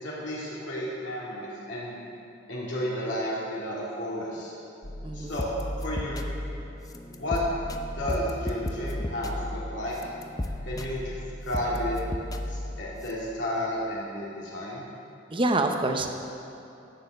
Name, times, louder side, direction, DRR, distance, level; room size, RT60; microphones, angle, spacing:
voice 1, 0.0-2.2 2.5-4.5 5.1-5.4 5.8-6.2 7.2-7.4 7.9-9.9 10.7-11.1 11.4-12.0 12.5-14.8, equal, 70° left, -7 dB, 3.0 m, -32 dB
sound 1, 4.8-13.1, left 1 dB, 20° left, 0.6 m, -34 dB
voice 2, 5.0-5.3 15.3-16.1, right 2 dB, 25° right, 5 dB, 0.8 m, -26 dB
11.5 x 7.0 x 7.7 m, 2.9 s
head